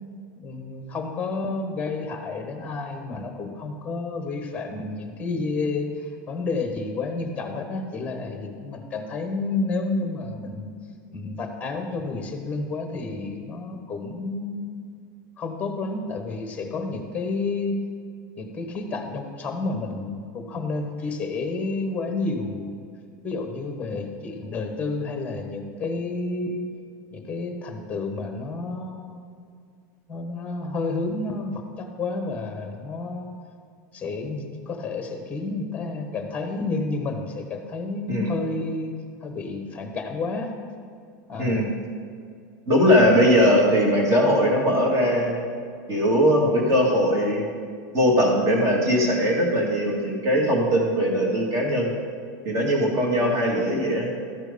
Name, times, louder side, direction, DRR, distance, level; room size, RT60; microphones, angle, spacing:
voice 1, 0.3-10.7 11.1-14.9 15.4-17.8 18.4-22.8 23.2-26.7 27.1-29.4 30.1-33.3 33.9-38.9 39.2-40.6 41.3-41.6 42.8-43.3, left 3 dB, 15° left, 4 dB, 1.2 m, -30 dB
voice 2, 42.7-45.4 45.9-47.5 47.9-51.9 52.5-54.1, equal, 30° right, -1 dB, 2.0 m, -20 dB
13.0 x 4.6 x 5.2 m, 2.3 s
supercardioid pair, 150°, 10 cm